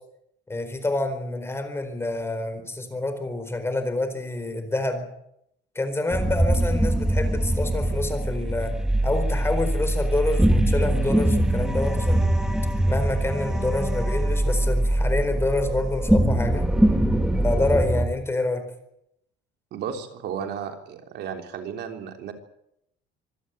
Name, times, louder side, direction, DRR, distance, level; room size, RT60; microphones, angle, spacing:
voice 1, 0.5-5.1 5.7-8.7 9.0-12.3 12.8-16.7 17.4-18.6, left 2 dB, 10° left, 9 dB, 4.4 m, -27 dB
sound 1, 6.1-18.1, right 1 dB, 5° right, 2.3 m, -22 dB
voice 2, 19.7-22.3, right 7 dB, 60° right, 5 dB, 3.6 m, -33 dB
26.0 x 17.0 x 9.2 m, 0.77 s
cardioid pair, 150°, 20 cm